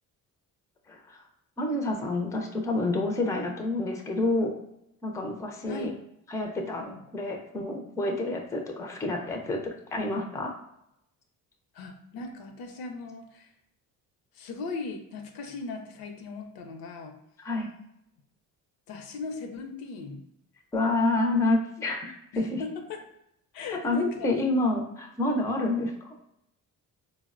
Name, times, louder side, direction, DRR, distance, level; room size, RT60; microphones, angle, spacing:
voice 1, 0.9-1.2 1.6-4.5 5.0-5.9 6.3-10.5 17.4-17.7 20.7-22.6 23.7-25.9, left 2 dB, 10° left, 3 dB, 0.3 m, -28 dB
voice 2, 11.7-13.5 14.3-17.2 18.9-20.2 22.3-23.0 23.5-24.3, left 3 dB, 85° left, 5 dB, 0.6 m, -38 dB
3.9 x 2.0 x 2.4 m, 0.80 s
cardioid pair, 125°, 35 cm